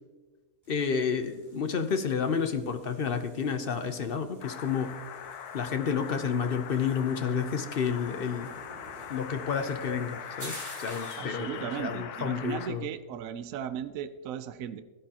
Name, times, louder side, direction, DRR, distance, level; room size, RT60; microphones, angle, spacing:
sound 1, 0.6-11.3, equal, 10° right, 4.6 m, -50 dB
voice 1, 0.7-4.9 5.5-8.5 9.1-12.8, left 6 dB, 55° left, 8 dB, 0.7 m, -30 dB
sound 2, 4.4-12.7, left 8 dB, 85° left, 1.3 m, -42 dB
voice 2, 11.2-14.8, right 9 dB, 70° right, 11 dB, 1.0 m, -36 dB
16.5 x 12.0 x 2.9 m, 1.3 s
omnidirectional pair, 1.6 m